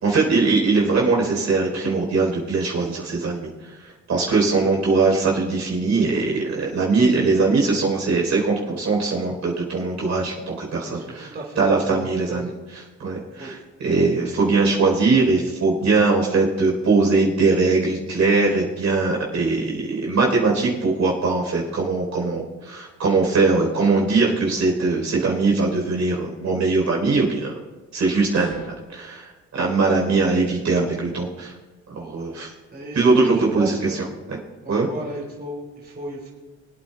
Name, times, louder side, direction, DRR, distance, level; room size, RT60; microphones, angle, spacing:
voice 1, 0.0-3.7 4.1-27.5 27.9-28.6 28.9-31.5 32.0-32.5 33.0-34.4 34.7-34.9, right 3 dB, 60° right, -1 dB, 3.9 m, -21 dB
voice 2, 10.9-12.5 13.4-13.5 32.7-34.1 34.6-36.3, right 1 dB, 35° right, -3 dB, 3.6 m, -34 dB
sound 1, 28.3-28.9, left 2 dB, 90° left, 1.7 m, -37 dB
25.5 x 9.0 x 2.3 m, 1.2 s
cardioid pair, 90°, 30 cm